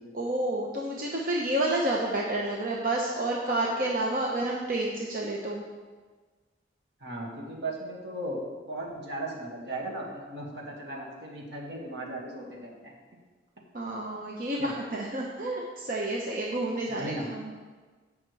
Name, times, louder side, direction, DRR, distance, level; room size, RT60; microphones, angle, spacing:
voice 1, 0.1-5.6 13.7-17.5, right 1 dB, 50° right, -2 dB, 0.9 m, -30 dB
voice 2, 7.0-12.9 14.6-14.7 16.9-17.3, right 1 dB, 70° right, -2 dB, 2.0 m, -37 dB
16.0 x 5.9 x 3.4 m, 1.4 s
head